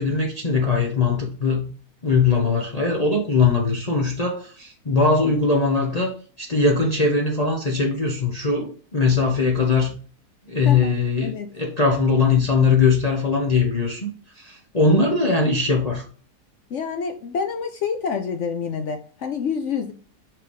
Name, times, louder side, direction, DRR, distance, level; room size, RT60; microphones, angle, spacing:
voice 1, 0.0-1.7 2.0-9.9 10.5-14.1 14.4-16.0, left 4 dB, 30° left, 0.8 m, -21 dB
voice 2, 14.9-15.3 16.7-19.9, left 6 dB, 60° left, 0.8 m, -28 dB
5.6 x 3.4 x 5.3 m
omnidirectional pair, 1.8 m